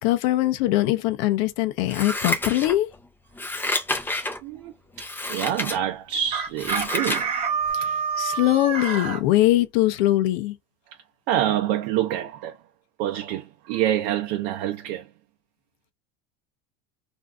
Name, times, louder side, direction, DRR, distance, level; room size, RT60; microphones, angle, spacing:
voice 1, 0.0-2.9 7.7-10.5, left 15 dB, 70° left, 0.5 m, -22 dB
Scissors, 1.9-3.0 3.3-4.4 5.0-5.8 6.2-7.3 7.7-7.8, left 2 dB, 5° left, 0.5 m, -29 dB
voice 2, 4.4-4.7 5.0-7.3 11.3-12.6 13.0-15.1, right 11 dB, 65° right, 0.6 m, -26 dB
Chicken rooster, 6.3-9.2, right 5 dB, 20° right, 0.8 m, -27 dB
2.6 x 2.3 x 3.4 m
cardioid pair, 165°, 32 cm